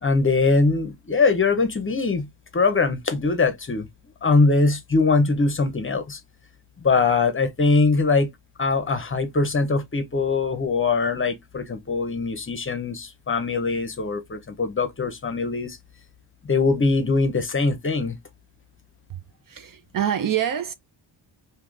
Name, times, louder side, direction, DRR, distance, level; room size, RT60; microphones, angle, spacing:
voice 1, 0.0-2.3 2.5-3.9 4.2-6.2 6.8-8.3 8.6-15.8 16.5-18.2, left 3 dB, 25° left, 0.7 m, -22 dB
voice 2, 19.5-20.7, right 10 dB, 45° right, 0.5 m, -26 dB
3.6 x 2.7 x 2.4 m
cardioid pair, 80°, 48 cm